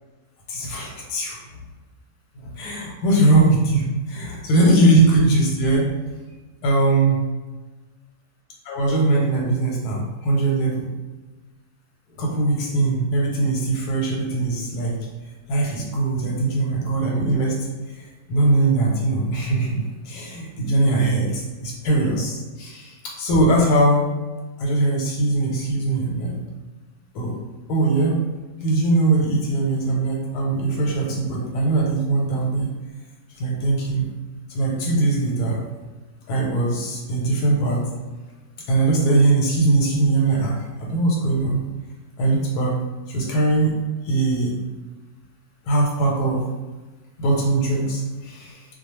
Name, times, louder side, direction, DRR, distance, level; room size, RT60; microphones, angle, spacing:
voice 1, 0.5-1.4 2.4-5.9 6.6-7.2 8.7-10.9 12.2-15.0 15.5-24.1 24.6-26.3 27.1-27.4 27.7-28.2 28.6-32.7 33.3-34.0 34.5-35.6 36.3-37.8 38.7-41.6 42.2-42.8 43.1-43.7 44.0-44.5 45.6-46.5 47.2-48.7, right 2 dB, 90° left, -2 dB, 1.1 m, -21 dB
2.3 x 2.2 x 2.9 m, 1.2 s
omnidirectional pair, 1.6 m